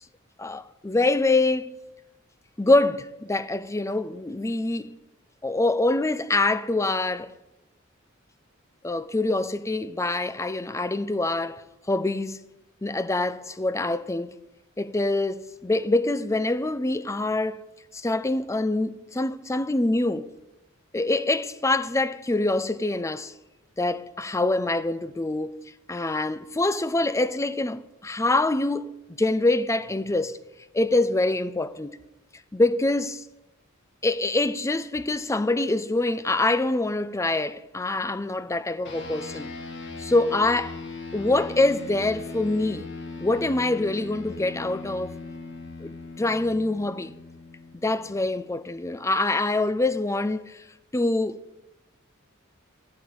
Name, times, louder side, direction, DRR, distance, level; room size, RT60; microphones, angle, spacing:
voice 1, 0.4-1.7 2.6-4.9 5.4-7.3 8.8-11.6 11.9-12.4 12.8-14.4 14.8-17.6 17.9-20.3 20.9-23.3 23.8-25.6 25.9-28.9 29.2-30.4 30.7-32.0 32.5-33.2 34.0-39.5 40.0-40.8 41.1-42.9 43.2-45.2 45.8-47.1 47.8-50.6 50.9-51.6, left 2 dB, 15° left, 0.5 m, -25 dB
sound 1, 38.8-48.6, left 3 dB, 60° left, 1.7 m, -39 dB
13.5 x 6.7 x 9.6 m
head